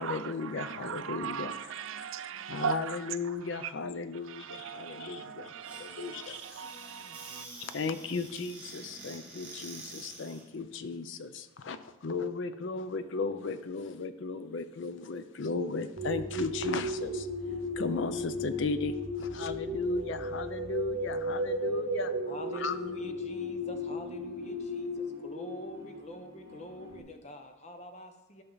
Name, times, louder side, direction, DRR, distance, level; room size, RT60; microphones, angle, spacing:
voice 1, 0.0-1.5 2.5-6.4 7.6-17.3 17.8-22.1 22.5-22.8, left 4 dB, 60° left, 0.5 m, -35 dB
voice 2, 0.6-3.0 4.5-6.3 6.6-7.4, right 8 dB, 70° right, 0.5 m, -38 dB
Squeak / Cupboard open or close, 5.6-10.5, right 2 dB, 5° right, 1.5 m, -47 dB
sound 1, 16.0-27.0, equal, 50° right, 1.9 m, -36 dB
voice 3, 22.3-28.4, left 1 dB, 30° left, 0.8 m, -46 dB
12.0 x 5.8 x 3.9 m
head